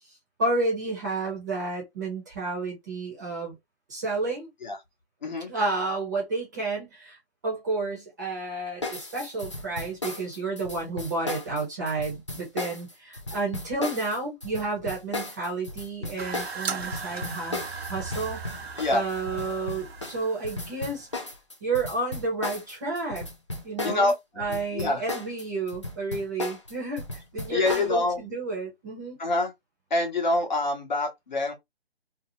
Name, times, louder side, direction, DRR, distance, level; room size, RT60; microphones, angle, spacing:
voice 1, 0.4-3.5 3.9-4.5 5.5-17.6 17.9-18.4 18.9-21.1 21.6-23.2 23.6-27.0 27.3-29.2, right 3 dB, 20° right, 0.8 m, -31 dB
sound 1, 8.8-24.1 24.4-27.9, left 2 dB, 30° left, 0.4 m, -35 dB
sound 2, 16.2-21.3, right 5 dB, 75° right, 0.8 m, -37 dB
voice 2, 24.5-25.0 27.5-28.2 29.2-29.5 29.9-31.5, left 2 dB, 45° left, 1.0 m, -26 dB
2.7 x 2.0 x 2.7 m
figure-of-eight pair, 155°, 31 cm